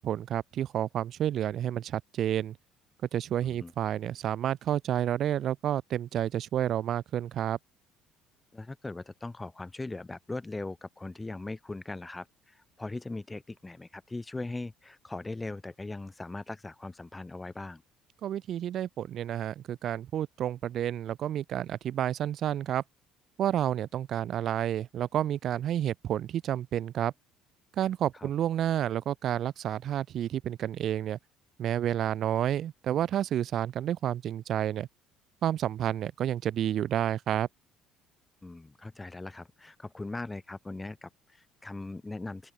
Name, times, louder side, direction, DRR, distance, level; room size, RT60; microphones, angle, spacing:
voice 1, 0.0-2.6 3.1-7.6 18.2-22.8 23.4-27.1 27.8-31.2 31.6-34.9 35.4-37.5, right 11 dB, 55° right, 0.7 m, -30 dB
voice 2, 3.4-3.7 8.5-17.8 28.2-28.3 38.4-42.5, left 2 dB, 15° left, 1.4 m, -40 dB
open air
supercardioid pair, 75°, 0 cm